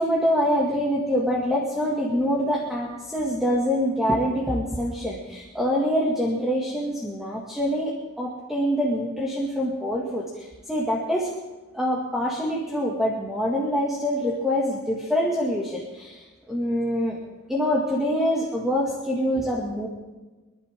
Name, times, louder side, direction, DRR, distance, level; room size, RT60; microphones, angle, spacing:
voice 1, 0.0-11.3 11.7-17.2 17.5-19.9, equal, ahead, -3 dB, 2.1 m, -25 dB
25.5 x 11.5 x 3.7 m, 1.2 s
head